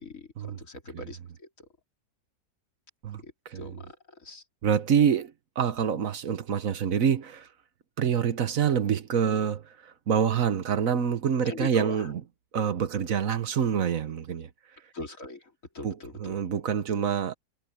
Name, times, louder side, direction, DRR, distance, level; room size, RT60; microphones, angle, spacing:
voice 1, 0.0-1.7 3.2-4.4 11.5-12.1 14.9-16.4, left 2 dB, 55° left, 3.7 m, -41 dB
voice 2, 3.0-3.8 4.6-5.3 5.6-7.5 8.0-12.2 12.5-14.5 15.8-17.3, right 7 dB, 60° right, 1.4 m, -26 dB
omnidirectional pair, 1.7 m